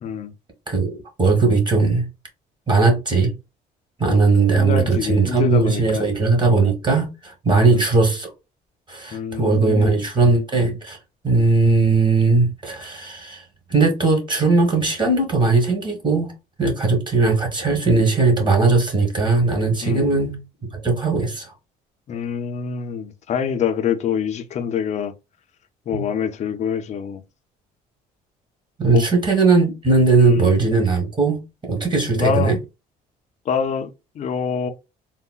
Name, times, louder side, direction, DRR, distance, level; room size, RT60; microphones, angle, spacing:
voice 1, 0.0-0.3 4.5-6.1 7.5-7.9 9.1-10.1 19.8-20.1 22.1-25.1 25.9-27.2 28.9-29.1 30.3-30.5 32.2-32.5 33.5-34.7, left 7 dB, 45° left, 0.4 m, -25 dB
voice 2, 0.7-2.1 2.7-3.3 4.0-8.3 8.9-11.0 11.2-13.4 13.7-16.3 16.6-20.4 20.7-21.5 25.9-26.0 28.8-32.6, right 3 dB, 25° right, 1.2 m, -18 dB
3.7 x 2.1 x 2.3 m
cardioid pair, 110°, 17 cm